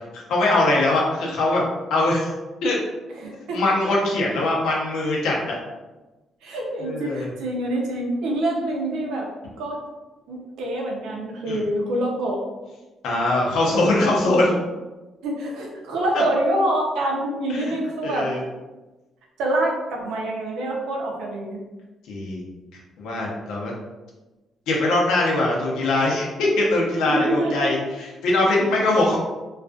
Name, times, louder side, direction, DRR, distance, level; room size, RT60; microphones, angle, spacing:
voice 1, 0.3-1.6 1.9-2.3 2.6-2.8 3.5-5.5 6.8-7.3 11.5-11.6 13.0-14.6 16.1-16.2 17.5-17.7 18.0-18.4 22.1-22.4 23.0-23.7 24.7-29.2, left 2 dB, 85° left, -3 dB, 0.7 m, -22 dB
voice 2, 3.2-3.6 6.4-9.3 9.6-9.8 10.3-12.4 15.2-18.3 19.4-21.6 27.1-27.7, right 1 dB, 85° right, -1 dB, 0.6 m, -26 dB
2.4 x 2.3 x 2.3 m, 1.1 s
cardioid pair, 90°, 0 cm